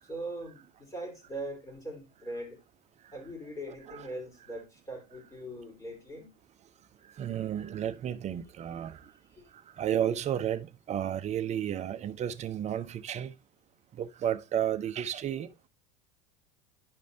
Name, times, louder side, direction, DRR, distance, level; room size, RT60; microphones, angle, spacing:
voice 1, 0.0-2.6 3.1-6.3 9.3-9.5, right 1 dB, 15° left, 3.9 m, -41 dB
voice 2, 7.2-9.0 9.8-13.3 14.0-15.5, right 10 dB, 35° right, 0.8 m, -32 dB
10.5 x 5.2 x 2.7 m
hypercardioid pair, 80°, 20 cm